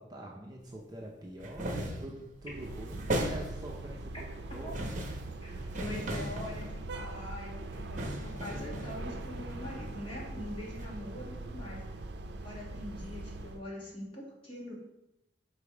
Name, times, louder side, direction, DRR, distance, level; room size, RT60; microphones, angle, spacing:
voice 1, 0.0-4.1 4.5-5.0 5.4-6.2, right 1 dB, 20° right, -1 dB, 0.7 m, -45 dB
sound 1, 1.4-2.2 2.6-3.8 4.5-7.2 7.7-10.4 10.8-10.9, right 1 dB, 45° right, 0.8 m, -38 dB
sound 2, 2.4-13.6, right 2 dB, 65° right, 0.5 m, -42 dB
voice 2, 5.8-6.7 6.9-11.8 12.4-14.7, left 1 dB, 30° left, -5 dB, 1.9 m, -43 dB
5.3 x 4.2 x 4.9 m, 0.89 s
head